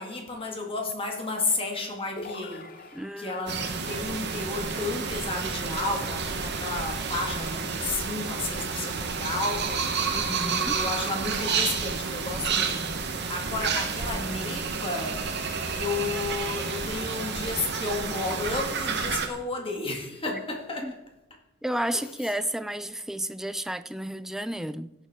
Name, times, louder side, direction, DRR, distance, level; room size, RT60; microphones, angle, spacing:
voice 1, 0.0-10.1 10.4-15.2 15.7-21.0 21.9-22.1, left 3 dB, 30° left, 2.0 m, -32 dB
sound 1, 2.2-3.7, left 2 dB, 45° left, 1.0 m, -42 dB
voice 2, 2.9-3.4 10.1-10.8 20.8-20.9 21.6-24.9, right 1 dB, ahead, 0.3 m, -32 dB
sound 2, 3.5-19.3, right 5 dB, 55° right, 1.1 m, -30 dB
16.5 x 7.3 x 3.6 m
head